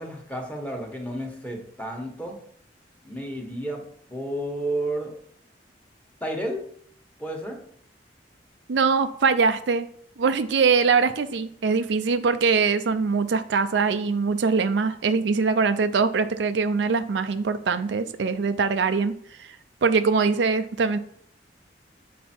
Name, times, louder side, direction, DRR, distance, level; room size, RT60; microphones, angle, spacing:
voice 1, 0.0-2.4 3.0-3.8 4.1-5.1 6.2-6.6 7.2-7.6, right 1 dB, 10° left, 1 dB, 1.2 m, -31 dB
voice 2, 8.7-9.9 10.2-19.1 19.4-19.6 19.8-21.0, right 5 dB, 85° right, 10 dB, 0.5 m, -22 dB
7.4 x 4.1 x 4.4 m, 0.63 s
head